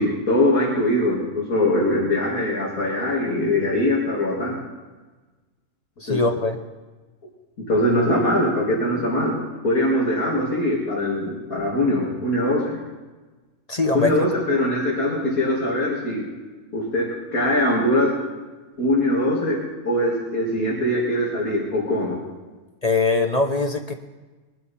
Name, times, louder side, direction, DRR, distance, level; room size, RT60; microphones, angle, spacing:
voice 1, 0.0-4.6 6.1-6.2 7.7-9.4 9.6-12.8 13.9-16.3 16.7-18.1 18.8-22.2, left 1 dB, 75° left, -5 dB, 2.9 m, -22 dB
voice 2, 6.0-6.6 13.7-14.2 22.8-23.9, left 3 dB, 30° left, 4 dB, 0.9 m, -22 dB
21.5 x 12.0 x 4.3 m, 1.3 s
omnidirectional pair, 1.5 m